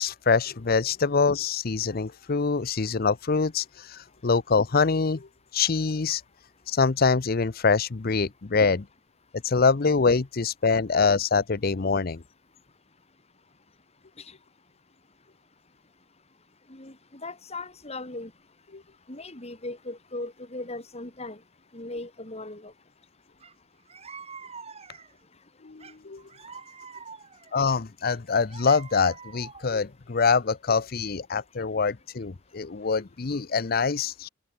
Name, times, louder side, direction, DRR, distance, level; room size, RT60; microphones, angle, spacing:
voice 1, 0.0-5.3 5.5-6.2 6.7-8.8 9.4-12.2 25.6-26.2 27.5-34.3, left 4 dB, 50° left, 0.7 m, -24 dB
voice 2, 16.7-18.3 19.1-21.4 21.7-22.7, left 2 dB, 35° left, 4.1 m, -38 dB
sound 1, 23.4-23.5 23.9-25.2 25.8-27.6 28.1-29.8, right 5 dB, 35° right, 3.6 m, -45 dB
head